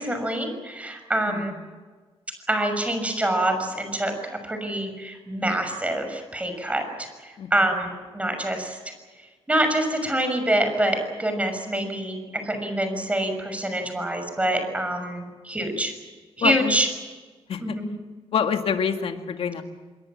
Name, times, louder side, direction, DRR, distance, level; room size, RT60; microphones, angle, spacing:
voice 1, 0.0-1.5 2.5-8.8 9.5-15.9 16.4-16.9 17.6-17.9, right 1 dB, 10° right, 6 dB, 6.2 m, -26 dB
voice 2, 16.4-16.8 17.5-17.8 18.3-19.6, left 7 dB, 65° left, 5 dB, 2.2 m, -26 dB
27.0 x 22.0 x 7.5 m, 1.4 s
wide cardioid pair, 135°, 11 cm